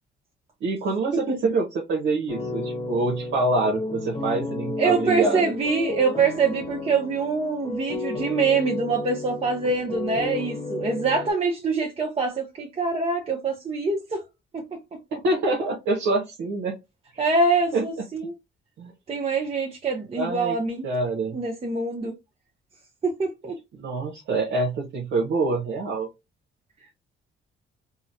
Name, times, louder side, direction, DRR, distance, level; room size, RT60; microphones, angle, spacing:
voice 1, 0.6-5.5 15.1-16.7 17.1-17.3 17.7-17.8 18.8-18.9 20.2-20.6 20.8-21.4 23.8-26.1, right 2 dB, 75° right, 0.8 m, -26 dB
sound 1, 2.3-11.3, left 2 dB, 25° left, 0.9 m, -32 dB
voice 2, 4.8-14.2 14.5-15.0 17.2-18.3 19.1-20.9 21.3-22.1 23.0-23.6, right 4 dB, 30° right, 0.7 m, -25 dB
3.7 x 2.0 x 2.7 m
cardioid pair, 90°, 20 cm